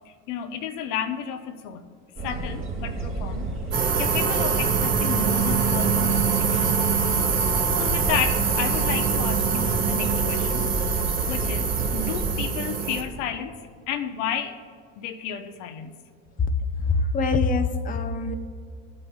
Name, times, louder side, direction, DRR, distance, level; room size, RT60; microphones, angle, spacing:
voice 1, 0.1-1.9 2.2-3.5 4.0-7.2 7.8-10.7 11.3-14.6 15.0-16.0, left 8 dB, 65° left, 1.0 m, -32 dB
sound 1, 2.2-12.3, right 2 dB, 30° right, 2.2 m, -30 dB
sound 2, 3.7-13.0, right 6 dB, 80° right, 2.0 m, -24 dB
voice 2, 16.8-18.4, left 3 dB, 20° left, 0.7 m, -23 dB
22.0 x 9.6 x 2.4 m
hypercardioid pair, 75°, 39 cm